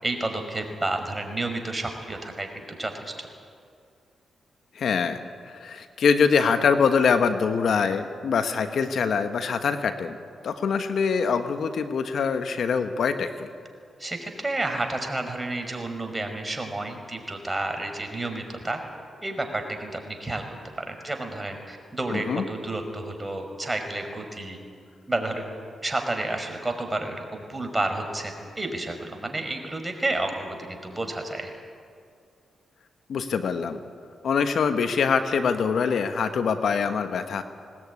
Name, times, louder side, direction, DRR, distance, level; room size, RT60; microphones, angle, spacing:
voice 1, 0.0-3.1 14.0-18.8 19.2-20.4 20.9-24.6 25.1-25.4 25.8-31.5, right 2 dB, 20° right, 5 dB, 5.2 m, -30 dB
voice 2, 4.7-5.2 5.5-10.2 10.4-13.5 22.1-22.4 33.1-33.8 34.2-37.4, left 6 dB, 70° left, 9 dB, 1.2 m, -24 dB
20.0 x 19.5 x 9.7 m, 2.3 s
supercardioid pair, 45°, 0 cm